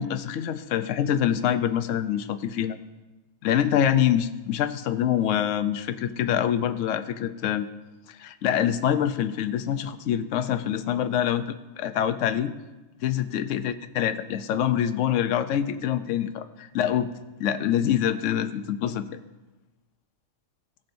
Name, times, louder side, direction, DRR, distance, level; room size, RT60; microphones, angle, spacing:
voice 1, 0.0-2.8 3.4-7.7 8.2-12.5 13.0-17.1 17.4-19.0, left 10 dB, 75° left, 10 dB, 1.0 m, -25 dB
18.0 x 7.3 x 2.6 m, 1.1 s
omnidirectional pair, 1.3 m